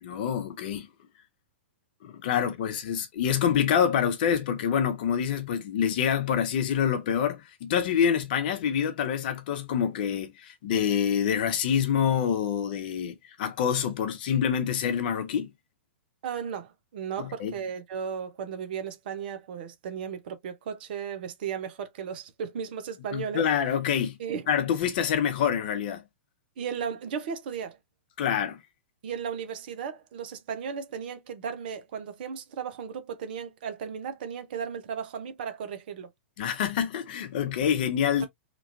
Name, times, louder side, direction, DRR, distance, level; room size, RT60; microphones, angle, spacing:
voice 1, 0.0-0.9 2.0-15.5 17.2-17.5 23.1-24.2 24.5-26.0 28.2-28.6 36.4-38.2, left 8 dB, 45° left, 0.8 m, -26 dB
voice 2, 16.2-23.4 24.2-24.4 26.6-27.8 29.0-36.1, right 7 dB, 50° right, 0.6 m, -35 dB
3.0 x 2.4 x 2.5 m
figure-of-eight pair, 105°, 7 cm